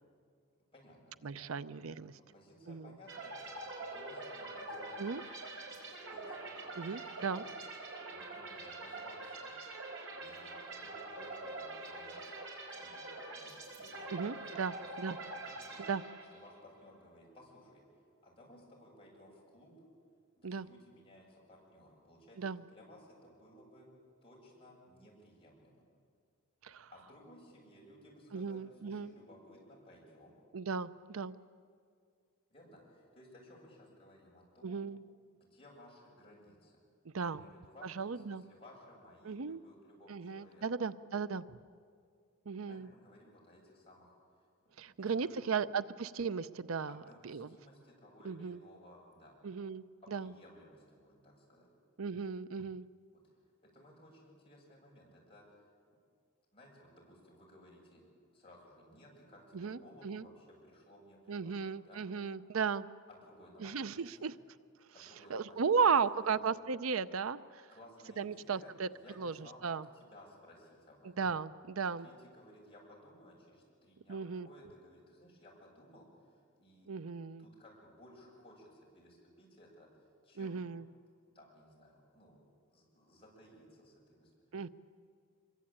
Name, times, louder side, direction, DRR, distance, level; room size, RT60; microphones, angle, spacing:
voice 1, 0.7-1.5 2.1-5.1 5.5-5.8 6.1-7.6 8.1-9.5 10.1-12.3 12.7-14.9 15.2-15.8 16.3-17.8 18.2-19.7 20.4-23.9 24.2-25.8 26.9-30.4 32.5-34.8 35.4-36.8 37.2-40.6 42.7-44.1 44.6-45.5 46.9-49.4 50.1-51.7 53.2-53.4 53.6-55.7 56.5-58.0 58.3-62.0 63.1-64.3 64.9-66.3 67.7-71.2 72.0-80.7 81.3-82.4 82.7-84.6, left 1 dB, 25° left, -3 dB, 7.9 m, -58 dB
voice 2, 1.2-2.1 2.7-2.9 5.0-5.2 6.8-7.4 14.1-15.2 15.9-16.0 20.4-20.7 22.4-22.6 26.6-26.9 28.3-29.1 30.5-31.3 34.6-35.0 37.1-37.4 37.8-38.4 39.2-39.6 40.1-41.6 42.5-42.9 44.8-47.0 47.2-47.5 48.2-48.6 49.4-49.8 50.1-50.3 52.0-52.9 59.5-60.3 61.3-62.9 63.6-64.4 65.3-67.7 68.2-68.9 69.2-69.3 69.6-69.8 71.2-72.0 74.1-74.5 76.9-77.4 80.4-80.8 84.5-84.7, right 5 dB, 90° right, 15 dB, 0.6 m, -35 dB
sound 1, 3.1-16.6, right 2 dB, 65° right, 5.1 m, -45 dB
25.5 x 23.0 x 8.9 m, 2.2 s
head